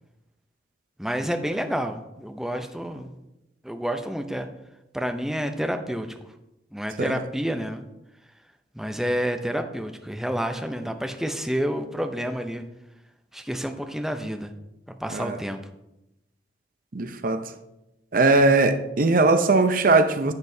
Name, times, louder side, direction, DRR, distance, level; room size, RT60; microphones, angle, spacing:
voice 1, 1.0-3.1 3.6-4.5 4.9-6.1 6.7-7.8 8.7-12.6 13.3-14.5 15.0-15.6, equal, ahead, 0.5 m, -29 dB
voice 2, 16.9-17.5 18.1-20.3, right 3 dB, 50° right, 0.6 m, -20 dB
10.5 x 7.7 x 2.7 m
head